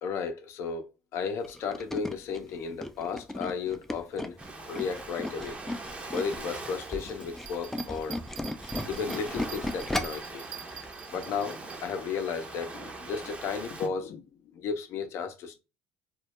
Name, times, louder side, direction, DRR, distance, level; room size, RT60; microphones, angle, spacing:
voice 1, 0.0-0.9 1.1-4.4 4.7-5.6 6.1-8.2 8.9-10.4 11.1-14.2 14.5-15.6, left 6 dB, 60° left, 0.6 m, -34 dB
Tools, 1.4-6.4 6.8-10.3 10.7-10.9 11.2-11.3, left 1 dB, 5° left, 0.3 m, -35 dB
Ocean, 4.4-13.9, right 2 dB, 25° right, 0.6 m, -42 dB
Bell, 7.4-11.8 12.3-12.4, right 11 dB, 75° right, 0.3 m, -45 dB
2.2 x 2.0 x 2.8 m
supercardioid pair, 80°, 5 cm